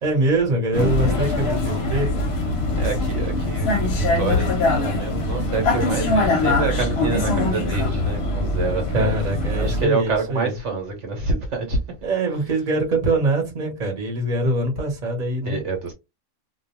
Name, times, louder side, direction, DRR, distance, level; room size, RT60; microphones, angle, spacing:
voice 1, 0.0-2.2 8.9-10.5 12.0-15.6, right 2 dB, 35° right, 1.0 m, -23 dB
Vehicle, 0.7-9.9, left 2 dB, 60° left, 0.8 m, -22 dB
voice 2, 2.8-9.2 9.5-11.8 15.4-15.9, right 4 dB, 65° right, 1.1 m, -27 dB
2.4 x 2.2 x 2.9 m
omnidirectional pair, 1.4 m